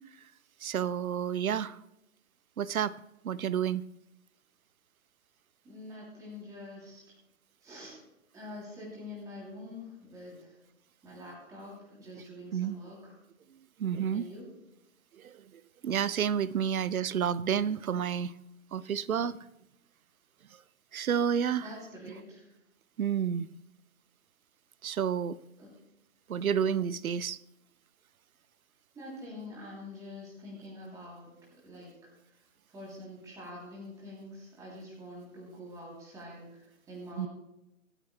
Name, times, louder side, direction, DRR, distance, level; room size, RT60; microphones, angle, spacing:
voice 1, 0.6-1.8 2.6-3.0 3.2-3.8 12.5-12.8 13.8-14.3 15.2-15.4 15.8-18.3 18.7-19.4 20.9-21.7 23.0-23.5 24.8-25.4 26.3-27.4 37.2-37.3, right 8 dB, 80° right, 18 dB, 0.7 m, -30 dB
voice 2, 5.6-7.0 7.6-8.0 8.3-10.6 11.0-13.1 14.1-14.5 21.6-22.5 25.6-25.7 28.9-31.3 31.6-32.1 32.7-37.3, left 1 dB, 10° right, -5 dB, 3.0 m, -46 dB
26.5 x 9.0 x 2.2 m, 0.88 s
hypercardioid pair, 145°, 41 cm